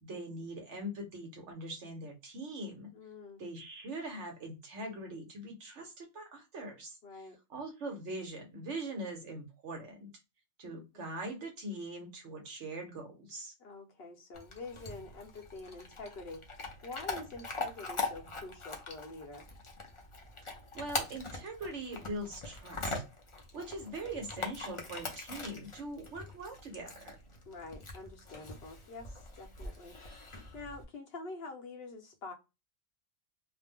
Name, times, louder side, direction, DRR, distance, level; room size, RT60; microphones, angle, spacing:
voice 1, 0.0-2.9 3.4-10.1 10.6-13.5 20.7-22.9 23.5-27.2, right 1 dB, 65° right, 1.0 m, -42 dB
voice 2, 2.9-3.4 7.0-7.4 10.6-11.1 13.6-19.5 27.5-32.3, left 3 dB, 55° left, 0.9 m, -46 dB
Chewing mastication / Dog, 14.3-30.8, left 3 dB, 40° left, 0.4 m, -42 dB
2.6 x 2.0 x 3.4 m
omnidirectional pair, 1.4 m